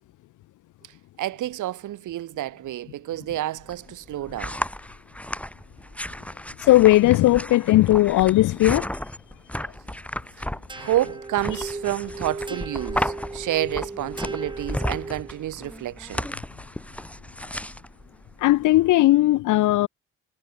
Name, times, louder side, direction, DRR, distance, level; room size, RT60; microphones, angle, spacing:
voice 1, 1.2-4.6 10.8-16.3, right 14 dB, 80° right, 3.3 m, -29 dB
sound 1, 3.6-18.9, left 1 dB, 5° left, 4.7 m, -34 dB
voice 2, 6.6-8.9 18.4-19.9, left 16 dB, 80° left, 0.9 m, -17 dB
sound 2, 10.7-15.5, right 3 dB, 15° right, 1.8 m, -36 dB
cardioid pair, 90°, 30 cm